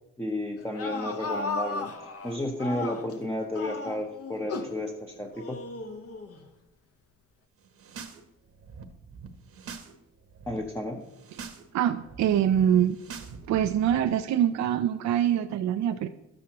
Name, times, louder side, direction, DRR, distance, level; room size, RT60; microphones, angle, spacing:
voice 1, 0.2-1.9 2.2-5.6 10.5-11.0, left 1 dB, 10° left, 2 dB, 0.8 m, -32 dB
sound 1, 0.6-3.2 3.5-4.8 5.4-6.4, left 3 dB, 50° left, 1.0 m, -35 dB
sound 2, 7.6-8.2 8.5-9.9 10.2-10.6 11.0-11.6 11.9-14.0, right 5 dB, 50° right, 1.0 m, -44 dB
voice 2, 11.7-13.0 13.5-16.1, right 10 dB, 65° right, 8 dB, 0.5 m, -24 dB
11.5 x 7.6 x 2.9 m, 0.91 s
cardioid pair, 90°, 30 cm